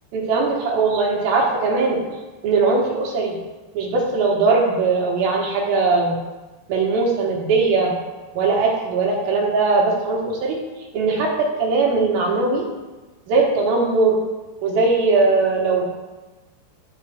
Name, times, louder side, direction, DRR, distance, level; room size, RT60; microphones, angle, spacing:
voice 1, 0.1-2.0 2.4-3.4 3.7-6.2 6.7-7.9 8.3-10.6 10.9-12.7 13.3-14.2 14.6-15.9, right 3 dB, 70° right, -1 dB, 2.6 m, -20 dB
13.0 x 4.4 x 3.4 m, 1.2 s
omnidirectional pair, 5.2 m